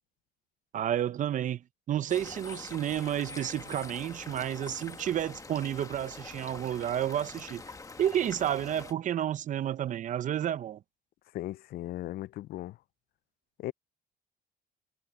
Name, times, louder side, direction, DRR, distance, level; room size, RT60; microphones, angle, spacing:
voice 1, 0.7-1.6 1.9-7.6 8.0-10.8, right 10 dB, 50° right, 0.7 m, -31 dB
sound 1, 2.1-8.9, left 3 dB, 20° left, 1.3 m, -45 dB
voice 2, 11.3-12.8 13.6-13.7, left 15 dB, 65° left, 0.5 m, -37 dB
cardioid pair, 110°, 17 cm